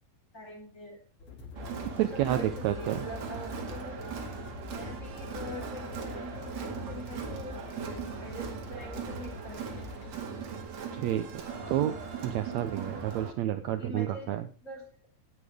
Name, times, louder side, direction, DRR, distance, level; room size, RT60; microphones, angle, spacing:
voice 1, 0.3-1.0 2.0-3.9 4.7-9.9 13.8-14.3 14.6-14.8, equal, 20° left, 0 dB, 4.3 m, -44 dB
sound 1, 1.2-10.2, left 5 dB, 40° left, 3.3 m, -45 dB
Crowd, 1.6-13.3, right 6 dB, 55° right, 2.9 m, -39 dB
voice 2, 2.0-3.0 10.9-11.9 12.2-14.4, right 12 dB, 85° right, 9 dB, 1.5 m, -30 dB
17.5 x 8.2 x 3.6 m, 0.36 s
omnidirectional pair, 4.0 m